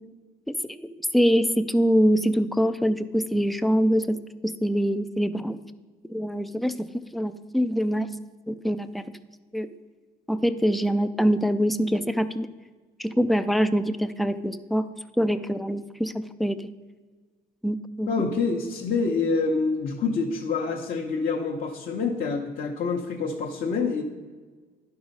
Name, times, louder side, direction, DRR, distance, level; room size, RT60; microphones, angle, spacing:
voice 1, 0.5-4.2 4.4-5.6 6.1-6.9 7.1-8.1 8.5-9.0 9.5-9.7 10.3-12.5 13.0-14.8 15.2-16.7 17.6-18.2, equal, ahead, 11 dB, 0.4 m, -24 dB
voice 2, 18.1-24.0, left 4 dB, 50° left, -2 dB, 1.0 m, -27 dB
11.0 x 4.8 x 5.4 m, 1.4 s
cardioid pair, 110°, 17 cm